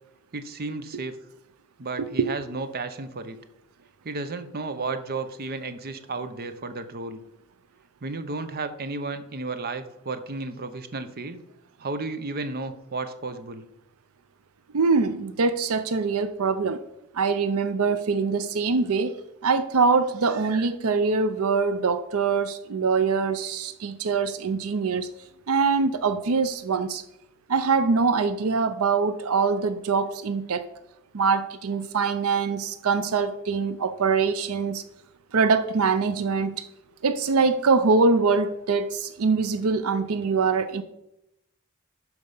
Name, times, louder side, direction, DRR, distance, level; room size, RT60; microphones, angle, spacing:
voice 1, 0.3-1.1 1.8-3.4 4.0-7.2 8.0-11.4 11.8-13.6, right 3 dB, 45° right, 10 dB, 0.7 m, -33 dB
voice 2, 2.0-2.3 14.7-16.8 17.1-25.1 25.5-27.0 27.5-30.6 31.1-34.8 35.3-36.6 37.0-40.8, right 4 dB, 80° right, 12 dB, 0.5 m, -23 dB
12.0 x 4.7 x 5.5 m, 0.86 s
head